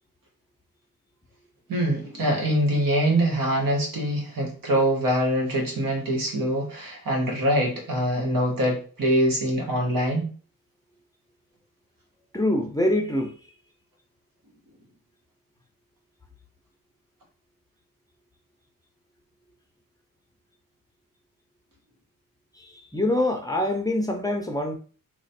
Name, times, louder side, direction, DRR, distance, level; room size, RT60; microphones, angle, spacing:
voice 1, 1.7-10.3, right 1 dB, 70° right, 1.4 m, -24 dB
voice 2, 12.3-13.3 22.6-24.7, left 1 dB, 10° left, 0.6 m, -25 dB
3.0 x 2.4 x 4.2 m
wide cardioid pair, 115°, 35 cm